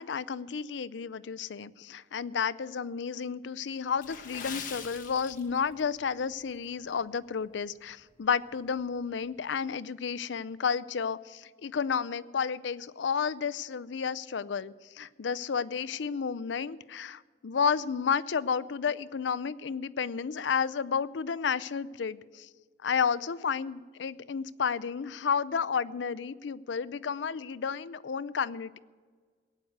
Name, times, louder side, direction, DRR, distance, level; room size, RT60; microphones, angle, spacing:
voice 1, 0.0-22.5 22.8-28.8, left 6 dB, 85° left, 18 dB, 0.5 m, -31 dB
Water / Splash splatter, 4.0-5.9 6.2-6.4 7.0-7.2 7.7-7.8, left 6 dB, 50° left, 1.6 m, -42 dB
17.5 x 7.9 x 9.3 m, 1.5 s
head